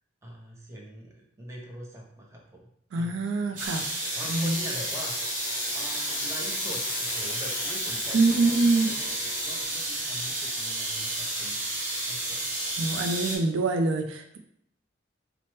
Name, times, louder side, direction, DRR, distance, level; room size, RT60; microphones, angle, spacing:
voice 1, 0.2-2.6 2.9-3.1 4.1-11.6 12.0-12.5, equal, 15° right, -2 dB, 0.6 m, -43 dB
voice 2, 2.9-3.9 4.3-4.6 8.1-8.9 12.8-14.4, right 3 dB, 75° right, 5 dB, 0.4 m, -25 dB
sound 1, 3.6-9.6, left 6 dB, 75° left, 0.5 m, -38 dB
sound 2, 3.6-13.4, right 1 dB, 45° right, 0.9 m, -31 dB
sound 3, 6.1-9.8 10.1-10.2 10.3-10.4 10.6-10.7, left 1 dB, 5° left, 0.9 m, -51 dB
4.3 x 2.1 x 3.0 m, 0.72 s
head